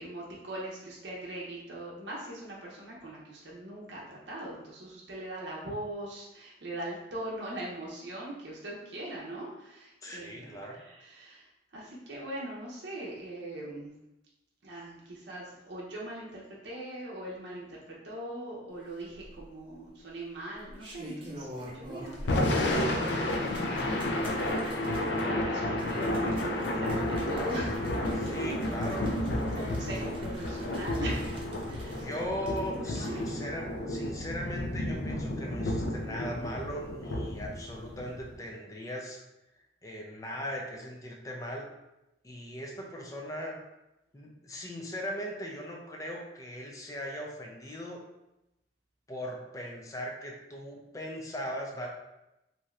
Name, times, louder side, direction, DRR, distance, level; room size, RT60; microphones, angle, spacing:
voice 1, 0.0-13.9 14.6-28.5 28.9-32.0 32.6-33.3, right 1 dB, 75° right, -5 dB, 0.6 m, -41 dB
voice 2, 10.0-10.8 28.1-29.9 31.8-39.2 39.8-41.7 42.2-43.6 44.1-48.0 49.1-51.9, equal, 20° left, -1 dB, 0.4 m, -39 dB
sound 1, 19.1-19.7 20.5-22.4 22.7-33.3 33.7-33.8, equal, 30° right, 0.6 m, -47 dB
Thunder / Rain, 22.1-38.4, left 1 dB, 75° left, 0.4 m, -31 dB
2.7 x 2.4 x 3.1 m, 0.91 s
head